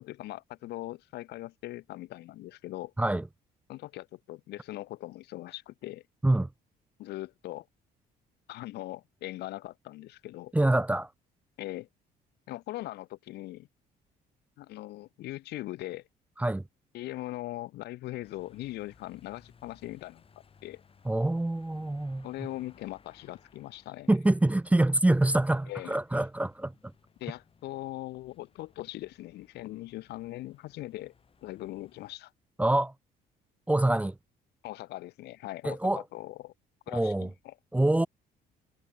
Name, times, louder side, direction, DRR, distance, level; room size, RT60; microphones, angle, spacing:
voice 1, 0.0-2.9 3.7-6.0 7.0-7.7 8.5-10.5 11.6-11.9 12.5-13.7 14.6-16.1 16.9-20.2 20.6-20.8 22.2-24.1 25.7-26.0 27.2-31.1 31.4-32.3 34.6-36.5 36.9-37.5, left 16 dB, 80° left, 2.1 m, -40 dB
voice 2, 10.5-11.1 16.4-16.6 21.0-22.3 24.1-26.7 32.6-32.9 33.7-34.2 35.6-36.0 36.9-37.3 37.7-38.1, right 1 dB, 10° right, 0.8 m, -25 dB
sound 1, 18.2-32.2, left 6 dB, 35° left, 6.3 m, -62 dB
cardioid pair, 110°, 17 cm